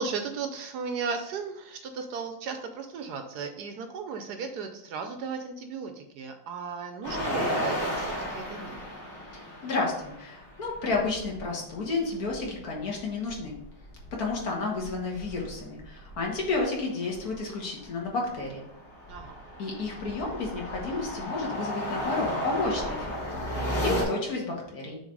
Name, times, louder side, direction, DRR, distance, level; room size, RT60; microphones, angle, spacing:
voice 1, 0.0-8.8 19.1-19.4, right 5 dB, 70° right, 6 dB, 1.1 m, -35 dB
sound 1, 7.0-11.4 11.7-11.8 12.1-14.4 14.7-16.6 17.1-17.4 17.8-24.0, equal, 30° left, 2.3 m, -34 dB
voice 2, 9.3-13.6 14.1-18.7 19.6-25.0, left 3 dB, 60° left, -1 dB, 1.7 m, -31 dB
6.4 x 3.1 x 4.6 m, 0.79 s
omnidirectional pair, 1.9 m